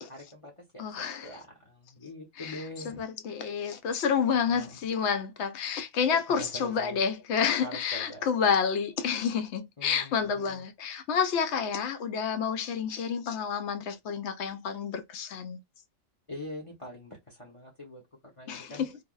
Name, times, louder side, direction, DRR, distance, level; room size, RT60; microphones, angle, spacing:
voice 1, 0.1-3.0 4.4-4.8 6.3-7.0 7.6-8.2 9.8-10.6 16.3-19.0, left 1 dB, 30° left, 0.9 m, -44 dB
voice 2, 0.8-1.3 2.4-15.6 18.5-18.9, left 6 dB, 70° left, 0.8 m, -29 dB
3.4 x 2.2 x 2.3 m
omnidirectional pair, 1.3 m